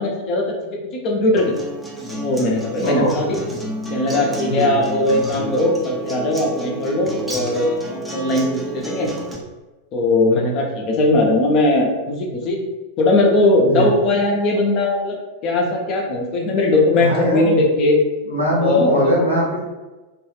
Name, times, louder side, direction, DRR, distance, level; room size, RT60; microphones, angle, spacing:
voice 1, 0.0-1.5 2.1-3.4 3.9-9.1 9.9-12.6 13.0-15.2 15.4-18.0 18.6-19.1, left 2 dB, 40° left, 0 dB, 0.6 m, -19 dB
Acoustic guitar, 1.4-9.4, right 2 dB, 5° right, 0.5 m, -30 dB
voice 2, 2.8-3.1 4.5-4.7 10.3-10.5 13.6-13.9 17.0-17.5 18.3-19.6, equal, 85° left, -5 dB, 0.7 m, -20 dB
2.4 x 2.3 x 3.2 m, 1.1 s
figure-of-eight pair, 90°, 0 cm